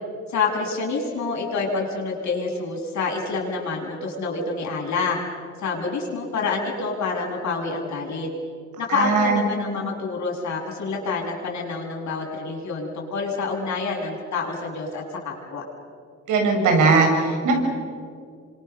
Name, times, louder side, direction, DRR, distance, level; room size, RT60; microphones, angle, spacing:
voice 1, 0.3-5.2 5.6-8.3 8.8-15.6, left 4 dB, 65° left, -1 dB, 7.7 m, -27 dB
voice 2, 8.9-9.4 16.3-17.6, right 4 dB, 80° right, 2 dB, 6.9 m, -19 dB
28.5 x 25.5 x 7.0 m, 2.2 s
cardioid pair, 90°, 30 cm